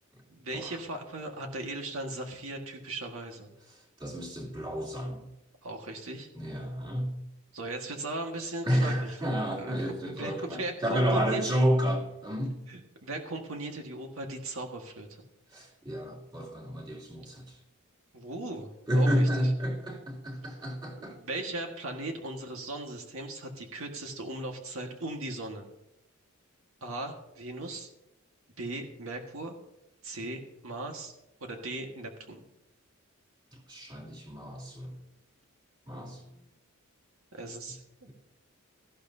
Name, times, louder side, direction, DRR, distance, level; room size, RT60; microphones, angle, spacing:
voice 1, 0.3-3.5 5.6-6.3 7.5-9.2 9.6-9.8 10.0-11.4 12.7-15.2 18.1-19.5 20.9-25.7 26.8-27.9 28.6-29.6 30.0-31.1 31.4-32.4 37.3-37.8, right 2 dB, 75° right, 2 dB, 1.7 m, -38 dB
voice 2, 4.0-5.3 6.3-7.2 8.6-12.6 15.5-17.5 18.9-21.2 33.5-35.0 35.9-36.3, equal, 20° right, -2 dB, 2.9 m, -30 dB
18.0 x 14.5 x 2.8 m, 0.89 s
head